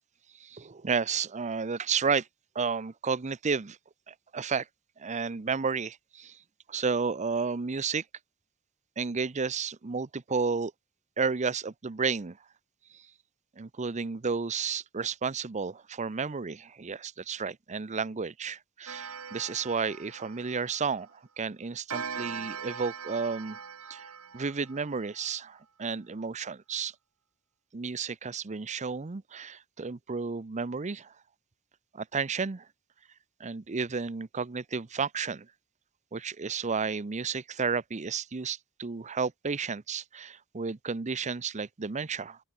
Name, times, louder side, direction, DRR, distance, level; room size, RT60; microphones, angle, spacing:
voice 1, 0.4-2.3 2.5-3.8 4.1-4.7 5.0-6.4 6.7-8.0 9.0-10.7 11.2-12.4 12.9-13.0 13.6-21.1 21.4-23.6 23.9-26.9 27.7-31.1 31.9-32.7 33.4-35.5 36.1-42.4, right 5 dB, 35° right, 0.6 m, -32 dB
Clock, 18.9-21.1 21.9-25.3, right 6 dB, 85° right, 1.7 m, -41 dB
open air
head